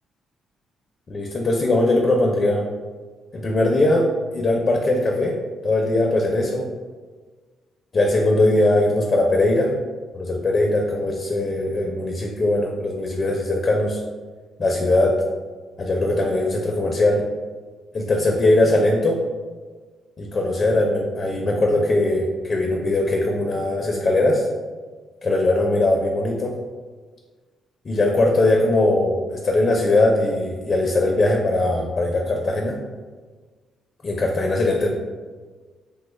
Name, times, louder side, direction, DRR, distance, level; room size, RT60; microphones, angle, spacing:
voice 1, 1.1-2.7 3.3-4.1 4.3-5.4 5.6-6.7 7.9-9.7 10.1-14.0 14.6-15.2 15.8-17.2 17.9-19.2 20.2-24.5 25.2-26.5 27.8-32.8 34.0-34.9, left 2 dB, 40° left, 0 dB, 0.4 m, -20 dB
3.2 x 2.2 x 3.1 m, 1.4 s
cardioid pair, 90°, 0 cm